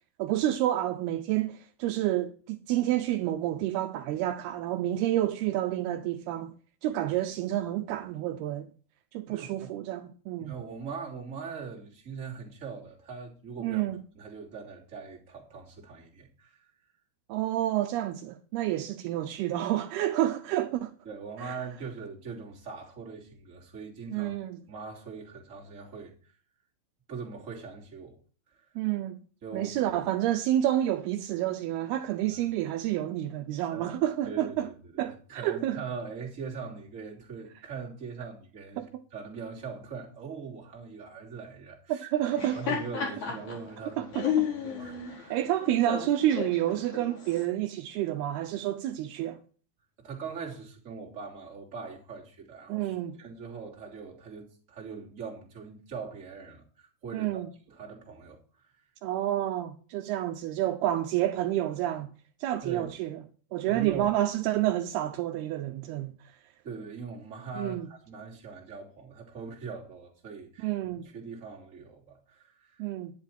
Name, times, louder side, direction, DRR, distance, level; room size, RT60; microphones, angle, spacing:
voice 1, 0.2-6.5 6.8-8.7 9.1-10.5 13.6-14.0 17.3-20.9 21.4-21.6 24.1-24.6 28.8-29.2 29.5-34.7 35.0-35.8 38.8-39.0 41.9-42.6 44.0-44.5 45.3-49.4 52.7-53.2 57.1-57.5 59.0-62.1 62.4-63.2 63.5-66.1 67.6-67.9 70.6-71.1 72.8-73.1, right 13 dB, 80° right, 2.5 m, -29 dB
voice 2, 9.3-9.7 10.4-13.8 14.1-16.7 21.0-24.4 24.7-26.3 27.1-28.2 28.5-28.6 29.4-29.9 32.3-32.4 33.7-34.0 34.2-42.1 42.5-45.4 50.0-57.4 57.7-58.7 62.6-62.9 63.7-64.1 66.6-70.7 71.0-72.9, right 5 dB, 20° right, 2.7 m, -41 dB
Laughter, 42.2-47.4, left 8 dB, 45° left, 5.8 m, -33 dB
11.0 x 10.5 x 4.4 m
omnidirectional pair, 4.7 m